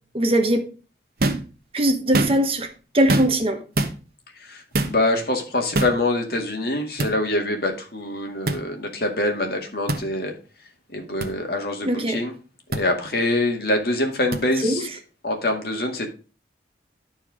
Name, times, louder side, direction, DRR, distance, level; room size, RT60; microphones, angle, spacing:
voice 1, 0.1-0.7 1.7-3.6 11.8-12.2 14.6-14.8, right 1 dB, 30° right, 1.1 m, -21 dB
sound 1, 1.2-1.5 2.0-2.6 3.1-3.5 3.8-4.0 4.7-5.0 5.7-6.0 7.0-7.1 8.5-8.6 9.9-10.0 11.2-11.3 12.7-12.8 14.3-14.4, right 2 dB, 55° right, 1.2 m, -23 dB
voice 2, 4.4-10.4 10.9-12.3 12.7-14.9 15.2-16.1, left 1 dB, 60° left, 2.0 m, -25 dB
12.0 x 4.6 x 4.9 m
head